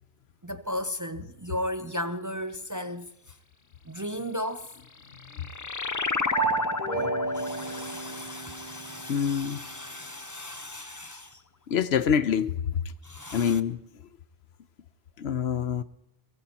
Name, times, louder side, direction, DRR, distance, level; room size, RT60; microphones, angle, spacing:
voice 1, 0.4-3.4 3.9-4.7 7.3-11.4 13.0-13.6, left 1 dB, 25° right, 0.5 m, -35 dB
sound 1, 4.7-9.8, left 4 dB, 30° left, 0.3 m, -32 dB
sound 2, 6.3-9.3, right 4 dB, 45° right, 2.8 m, -32 dB
voice 2, 9.1-9.6 11.7-12.5 13.3-13.8 15.2-15.8, left 8 dB, 85° left, 1.0 m, -25 dB
23.0 x 19.5 x 3.0 m
omnidirectional pair, 1.0 m